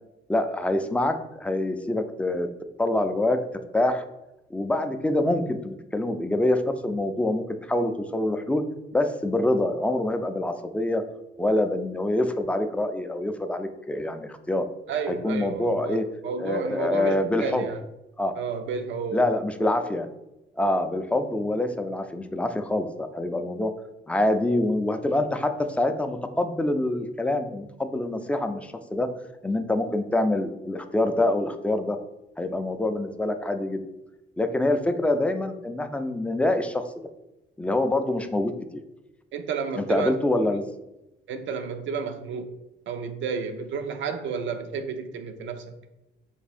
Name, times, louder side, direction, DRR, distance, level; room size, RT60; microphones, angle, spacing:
voice 1, 0.3-2.5 2.8-3.4 3.7-4.0 4.5-8.6 8.9-11.0 11.4-14.6 15.1-16.1 16.4-17.6 18.2-18.3 19.1-20.1 20.6-23.7 24.1-29.1 29.4-32.0 32.4-33.8 34.4-37.1 37.6-38.8 39.8-40.7, left 1 dB, 5° left, 7 dB, 0.3 m, -25 dB
voice 2, 14.9-17.8 18.3-19.2 39.3-40.2 41.3-42.5 42.9-45.7, right 5 dB, 70° right, 8 dB, 0.5 m, -31 dB
3.5 x 2.6 x 4.1 m, 0.95 s
cardioid pair, 90°, 20 cm